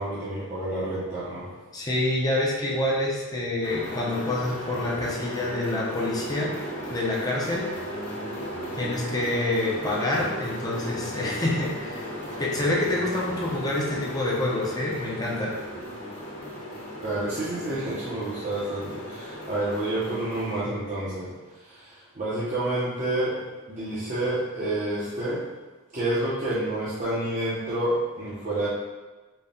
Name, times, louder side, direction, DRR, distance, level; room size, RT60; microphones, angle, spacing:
voice 1, 0.0-1.5 17.0-21.3 21.6-23.4 23.7-25.5 25.9-28.7, right 1 dB, 35° right, -10 dB, 0.7 m, -29 dB
voice 2, 1.7-6.5 6.9-7.7 8.8-12.1 12.4-15.5, left 1 dB, 15° left, -5 dB, 0.6 m, -27 dB
sound 1, 3.6-20.6, equal, 50° left, 1.1 m, -36 dB
4.1 x 2.2 x 3.5 m, 1.3 s
head